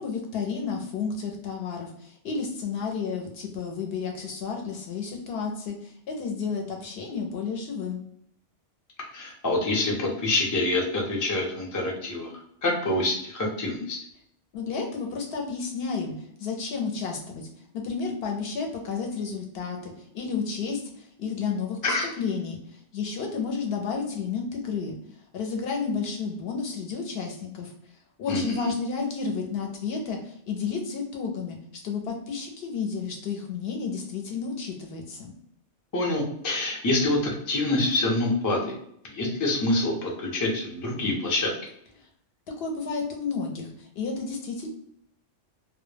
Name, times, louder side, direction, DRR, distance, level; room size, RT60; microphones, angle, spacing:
voice 1, 0.0-8.0 14.5-17.5 17.7-25.0 25.3-27.7 28.2-31.6 31.8-35.3 42.6-44.7, left 5 dB, 65° left, 1 dB, 0.7 m, -31 dB
voice 2, 9.1-12.3 12.6-14.0 21.8-22.1 28.3-28.7 35.9-38.7 39.1-41.5, left 2 dB, 30° left, -1 dB, 0.3 m, -26 dB
2.1 x 2.1 x 3.1 m, 0.70 s
omnidirectional pair, 1.2 m